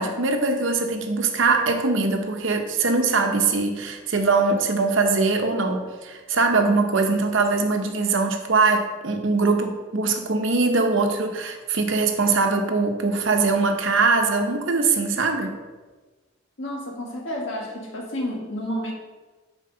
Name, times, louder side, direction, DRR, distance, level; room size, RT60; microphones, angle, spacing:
voice 1, 0.0-15.6, right 3 dB, 65° right, 5 dB, 0.8 m, -22 dB
voice 2, 16.6-18.9, equal, 65° left, 0 dB, 1.4 m, -30 dB
9.3 x 4.5 x 3.9 m, 1.3 s
head